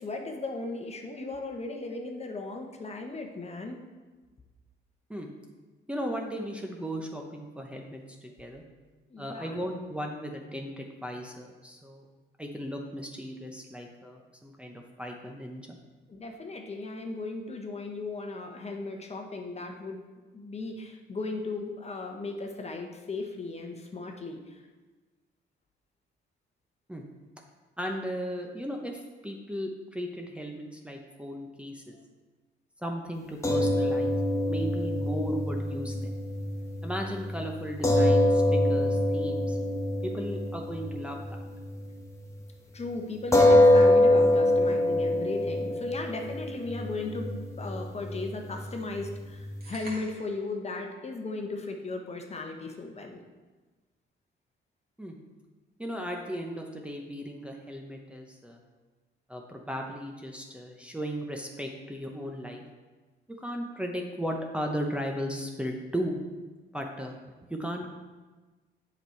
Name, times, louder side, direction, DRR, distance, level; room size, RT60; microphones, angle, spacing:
voice 1, 0.0-3.8 9.1-9.6 16.1-20.0 20.3-24.6 42.7-53.2, left 3 dB, 30° left, 3 dB, 1.1 m, -37 dB
voice 2, 5.9-8.6 9.2-12.0 12.4-15.8 26.9-27.0 27.8-32.0 32.8-34.2 34.5-36.1 36.8-39.6 40.0-41.4 55.0-55.2 55.8-58.6 59.3-62.6 63.3-66.2 66.7-67.2 67.5-67.9, equal, 5° right, 0 dB, 0.8 m, -36 dB
sound 1, 33.4-41.9 42.3-42.4 43.3-49.9, left 1 dB, 15° left, 1.2 m, -25 dB
sound 2, 49.6-50.4, right 1 dB, 50° right, 2.6 m, -45 dB
8.0 x 5.5 x 4.5 m, 1.3 s
cardioid pair, 90°, 20 cm